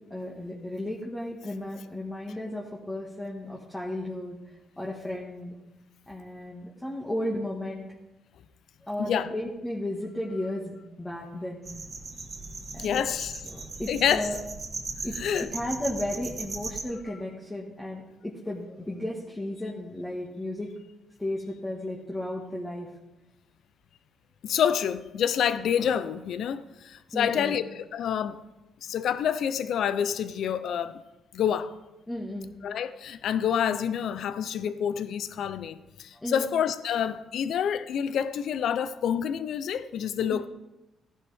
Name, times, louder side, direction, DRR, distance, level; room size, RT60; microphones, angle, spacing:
voice 1, 0.1-4.4 4.8-5.6 6.1-7.8 8.8-11.6 12.7-13.0 13.5-14.4 15.0-15.2 15.5-20.7 21.2-22.9 27.1-27.6 32.1-32.5 36.1-36.5 40.3-40.4, left 1 dB, 15° left, 1.8 m, -34 dB
voice 2, 9.0-9.3 12.8-13.3 13.9-14.3 15.2-15.5 24.4-28.4 28.8-31.0 31.3-31.7 32.6-40.5, left 8 dB, 70° left, 0.6 m, -28 dB
sound 1, 11.6-16.8, right 3 dB, 40° right, 1.7 m, -38 dB
15.0 x 11.0 x 3.5 m
cardioid pair, 90°, 0 cm